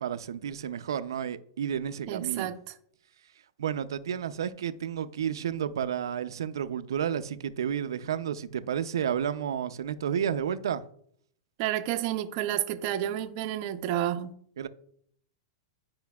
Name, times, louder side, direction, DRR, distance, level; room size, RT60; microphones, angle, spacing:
voice 1, 0.0-2.5 3.6-10.8 14.6-14.7, right 8 dB, 90° right, 0.5 m, -31 dB
voice 2, 2.1-2.6 11.6-14.3, right 12 dB, 45° right, 0.5 m, -30 dB
10.5 x 5.0 x 2.3 m
supercardioid pair, 145°, 2 cm